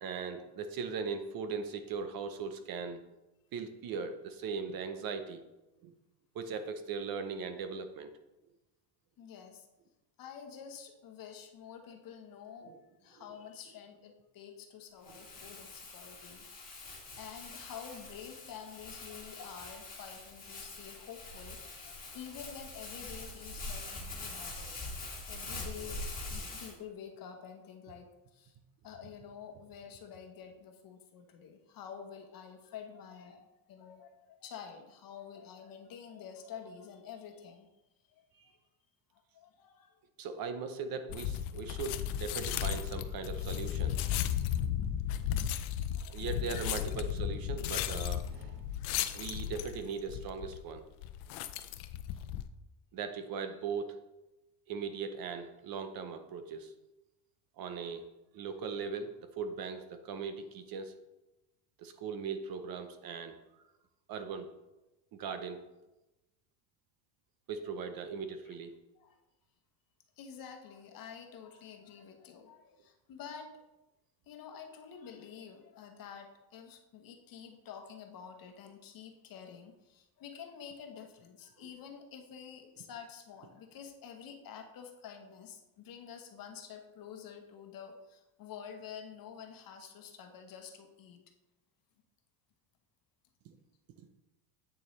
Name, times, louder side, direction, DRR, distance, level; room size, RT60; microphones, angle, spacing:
voice 1, 0.0-3.0 3.5-5.4 5.8-5.9 6.3-8.1 12.7-12.8 15.1-15.2 26.4-26.5 40.2-44.0 46.1-48.6 49.1-50.8 52.9-54.0 54.7-56.7 57.6-58.1 58.3-61.0 61.8-63.4 64.1-64.5 65.1-65.6 67.5-68.8 93.4-93.6 94.0-94.1, right 5 dB, 45° right, 8 dB, 0.8 m, -39 dB
voice 2, 9.2-9.7 10.2-12.7 13.0-24.8 25.3-28.6 28.8-37.7 38.1-38.6 39.1-40.0 46.0-46.8 68.9-69.2 70.2-73.6 74.3-91.2, left 7 dB, 45° left, 4 dB, 1.2 m, -49 dB
Crumpling crinkling, 15.0-26.7, left 2 dB, 15° left, 2.2 m, -44 dB
sound 1, 41.1-52.5, left 10 dB, 80° left, 0.7 m, -35 dB
8.6 x 6.9 x 3.2 m, 0.98 s
cardioid pair, 135°, 49 cm